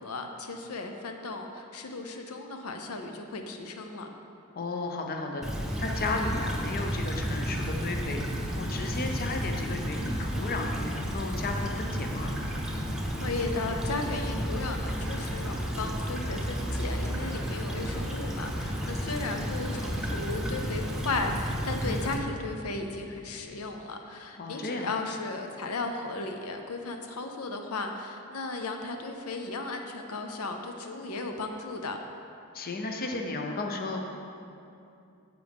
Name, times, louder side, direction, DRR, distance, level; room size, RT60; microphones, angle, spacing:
voice 1, 0.0-4.1 13.2-32.0, left 3 dB, 80° left, 4 dB, 0.7 m, -35 dB
voice 2, 4.5-12.3 21.8-22.1 24.4-24.9 32.5-34.0, left 2 dB, 45° left, 2 dB, 0.7 m, -34 dB
Stream / Trickle dribble, 5.4-22.2, equal, 5° right, 0.8 m, -32 dB
9.6 x 7.6 x 3.6 m, 2.6 s
head